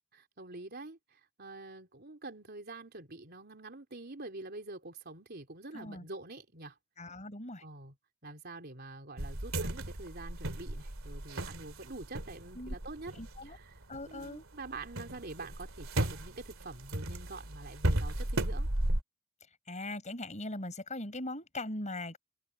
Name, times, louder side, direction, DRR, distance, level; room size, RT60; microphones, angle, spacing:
voice 1, 0.1-6.8 7.6-7.9 8.2-13.2 13.4-18.7, right 2 dB, 50° right, 3.8 m, -46 dB
voice 2, 5.7-6.0 7.0-7.6 12.6-12.7 13.2-13.6 13.9-14.4 19.7-22.2, left 2 dB, 35° left, 5.2 m, -40 dB
sound 1, 9.2-14.3 14.6-19.0, right 1 dB, 75° right, 2.6 m, -35 dB
open air
head